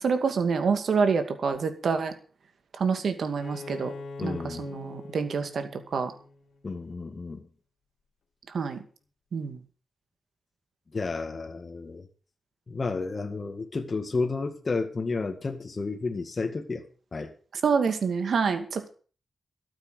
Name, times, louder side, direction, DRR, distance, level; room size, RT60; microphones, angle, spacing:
voice 1, 0.0-2.1 2.8-3.9 4.2-6.1 8.5-8.8 9.3-9.6 17.6-18.9, right 5 dB, 70° right, 8 dB, 2.4 m, -27 dB
Bowed string instrument, 3.4-7.0, left 3 dB, 75° left, 2.7 m, -43 dB
voice 2, 4.2-4.7 6.6-7.5 10.9-12.1 12.7-16.9 17.1-17.3, left 3 dB, 40° left, 5 dB, 2.0 m, -31 dB
13.0 x 8.9 x 6.9 m, 0.40 s
wide cardioid pair, 95°, 0 cm